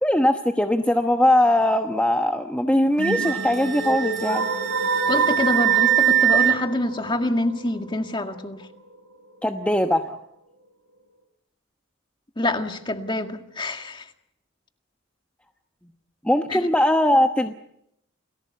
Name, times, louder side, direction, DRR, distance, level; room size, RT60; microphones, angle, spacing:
voice 1, 0.0-4.5 9.4-10.2 16.2-17.5, left 1 dB, 5° left, 5 dB, 1.0 m, -20 dB
Wind instrument woodwind instrument, 3.0-6.6, right 11 dB, 55° right, 4.0 m, -22 dB
sound 1, 3.0-9.0, right 3 dB, 85° right, 4.8 m, -29 dB
voice 2, 5.0-8.7 12.4-14.1 16.5-16.7, left 1 dB, 20° left, 6 dB, 1.9 m, -26 dB
29.5 x 19.5 x 8.3 m, 0.79 s
head